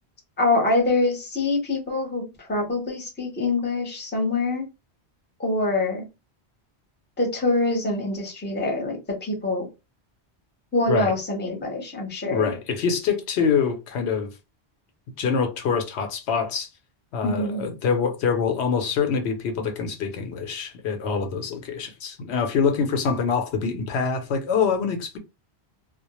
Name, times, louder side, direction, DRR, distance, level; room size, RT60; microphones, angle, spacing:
voice 1, 0.4-4.7 5.4-6.0 7.2-9.7 10.7-12.5 17.2-17.7, left 2 dB, 10° left, 0.6 m, -25 dB
voice 2, 12.3-14.3 15.2-16.7 17.1-25.2, left 6 dB, 80° left, 0.9 m, -25 dB
2.1 x 2.0 x 2.9 m
omnidirectional pair, 1.1 m